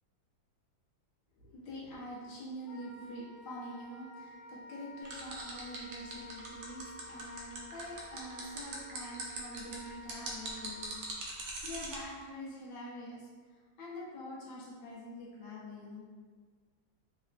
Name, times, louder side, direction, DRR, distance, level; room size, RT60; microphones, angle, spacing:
voice 1, 1.4-13.3 13.8-16.1, equal, 65° left, -5 dB, 1.4 m, -45 dB
Wind instrument woodwind instrument, 2.6-11.0, left 1 dB, 20° right, 1.4 m, -51 dB
sound 1, 5.1-12.0, right 2 dB, 70° right, 1.3 m, -41 dB
3.5 x 3.3 x 2.4 m, 1.5 s
omnidirectional pair, 2.1 m